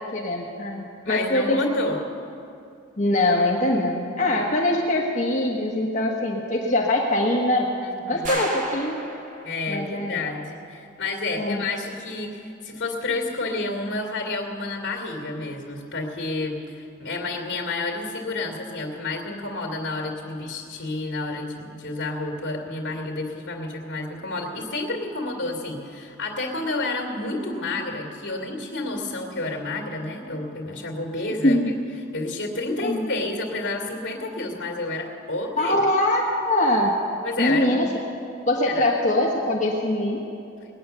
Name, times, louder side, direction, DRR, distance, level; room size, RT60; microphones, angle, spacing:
voice 1, 0.1-1.8 3.0-7.7 8.1-9.0 9.7-10.2 11.4-11.6 31.4-31.7 32.8-33.1 35.6-37.0 37.4-37.9 38.5-40.2, left 1 dB, 40° left, -1 dB, 1.2 m, -23 dB
voice 2, 1.0-2.0 7.8-8.4 9.4-31.6 32.1-35.8 37.2-37.8 38.6-38.9, left 2 dB, 65° left, -1 dB, 2.4 m, -30 dB
sound 1, 8.2-9.7, right 2 dB, 40° right, 1.3 m, -34 dB
19.5 x 9.4 x 6.9 m, 2.6 s
head